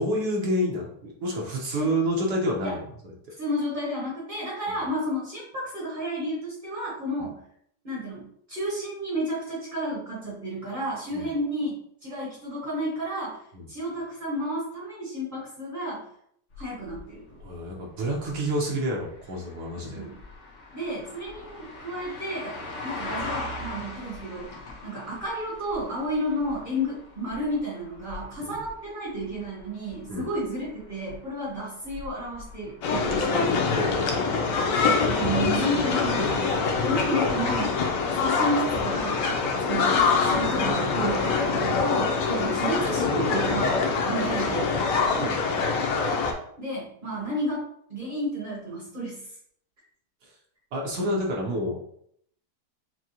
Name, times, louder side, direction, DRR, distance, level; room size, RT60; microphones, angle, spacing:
voice 1, 0.0-2.8 11.1-11.3 13.5-13.7 17.4-20.0 28.4-28.6 30.1-30.3 33.7-34.3 45.2-45.4 50.7-51.8, equal, 70° right, -2 dB, 1.3 m, -28 dB
voice 2, 3.4-7.4 7.8-8.2 8.5-13.4 13.7-16.0 16.6-17.2 19.9-20.2 20.7-24.5 24.8-33.4 35.1-37.9 38.1-39.3 39.6-44.9 46.6-47.6 47.9-49.2, equal, 35° right, -4 dB, 1.0 m, -31 dB
sound 1, 16.5-33.9, left 2 dB, 65° left, 1.5 m, -42 dB
sound 2, 32.8-46.3, left 4 dB, 90° left, 1.3 m, -24 dB
6.0 x 2.1 x 2.9 m, 0.68 s
omnidirectional pair, 1.8 m